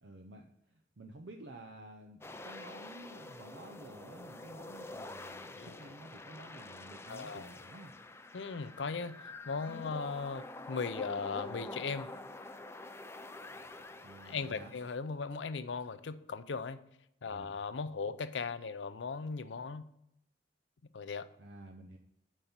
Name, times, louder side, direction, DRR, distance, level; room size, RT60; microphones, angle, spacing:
voice 1, 0.0-7.9 14.0-14.7 17.3-17.5 21.4-22.0, right 2 dB, 70° right, 3 dB, 0.7 m, -52 dB
sound 1, 2.2-15.0, left 2 dB, 15° left, 0.5 m, -47 dB
voice 2, 7.1-7.5 8.3-9.2 9.5-12.1 14.2-16.8 17.2-19.9 20.9-21.3, left 4 dB, 75° left, 13 dB, 0.6 m, -38 dB
8.9 x 5.5 x 4.4 m, 0.81 s
head